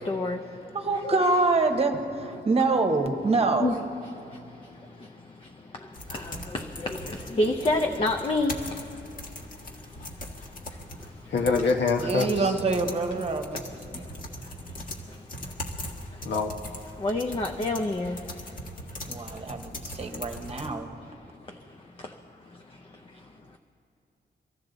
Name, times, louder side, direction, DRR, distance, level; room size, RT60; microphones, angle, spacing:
voice 1, 0.1-0.4 1.0-1.4 3.6-3.8 6.8-7.0 7.4-8.5 17.0-18.2, left 2 dB, 30° left, 0.6 m, -26 dB
voice 2, 0.7-3.7 12.0-14.0 19.1-20.9, right 3 dB, 35° right, 1.1 m, -26 dB
sound 1, 5.9-20.7, left 1 dB, 45° left, 1.6 m, -40 dB
voice 3, 11.3-12.5 16.2-16.5, left 4 dB, 75° left, 1.3 m, -24 dB
24.0 x 15.0 x 4.0 m
wide cardioid pair, 175°, 19 cm